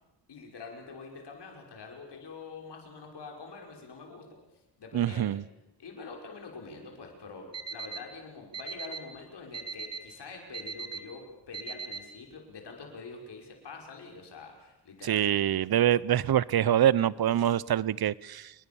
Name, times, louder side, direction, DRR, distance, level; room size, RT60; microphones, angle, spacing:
voice 1, 0.3-4.3 4.8-5.3 5.8-15.6, left 4 dB, 75° left, 2 dB, 6.2 m, -45 dB
voice 2, 4.9-5.4 15.1-18.5, right 11 dB, 60° right, 21 dB, 0.8 m, -25 dB
Alarm, 7.5-8.0 8.5-9.0 9.5-10.0 10.5-11.0 11.5-12.0, right 5 dB, 35° right, 2.5 m, -37 dB
29.0 x 21.0 x 7.2 m, 0.94 s
cardioid pair, 85°, 41 cm